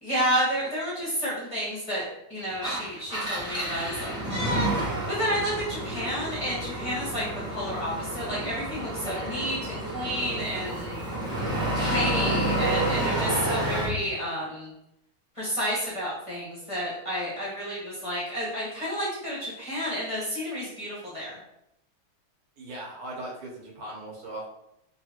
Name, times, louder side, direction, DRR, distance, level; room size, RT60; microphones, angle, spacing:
voice 1, 0.0-2.0 2.3-4.8 5.1-10.9 11.7-14.7 15.3-21.4, equal, 20° left, -8 dB, 0.9 m, -30 dB
Engine, 2.5-14.0, right 1 dB, 5° right, 0.6 m, -30 dB
voice 2, 22.6-24.5, right 1 dB, 90° right, -3 dB, 2.0 m, -38 dB
3.8 x 3.2 x 2.8 m, 0.82 s
omnidirectional pair, 2.3 m